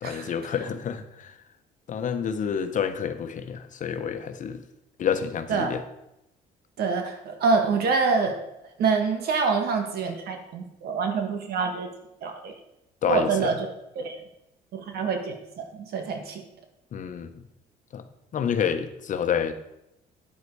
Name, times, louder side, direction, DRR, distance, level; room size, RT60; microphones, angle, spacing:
voice 1, 0.0-1.4 1.9-4.6 5.0-5.8 13.0-13.6 16.9-17.5 17.9-18.0 18.3-19.5, left 7 dB, 50° left, 9 dB, 1.1 m, -28 dB
voice 2, 6.8-8.4 8.8-11.9 12.2-12.5 13.1-13.5 14.0-14.2 14.7-16.4, right 5 dB, 65° right, 4 dB, 1.7 m, -26 dB
9.4 x 8.2 x 4.8 m, 0.84 s
cardioid pair, 110°, 17 cm